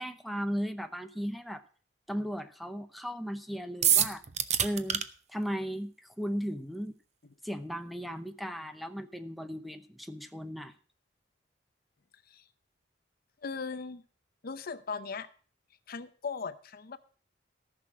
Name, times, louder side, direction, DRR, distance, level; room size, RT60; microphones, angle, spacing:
voice 1, 0.0-1.6 2.1-4.2 4.6-5.0 5.3-6.9 7.4-10.7, equal, ahead, 9 dB, 0.7 m, -36 dB
sound 1, 3.8-5.0, right 9 dB, 35° right, 0.7 m, -25 dB
voice 2, 13.4-14.0 14.4-15.3 15.9-17.0, left 5 dB, 55° left, 13 dB, 0.6 m, -38 dB
14.0 x 6.2 x 6.0 m, 0.41 s
head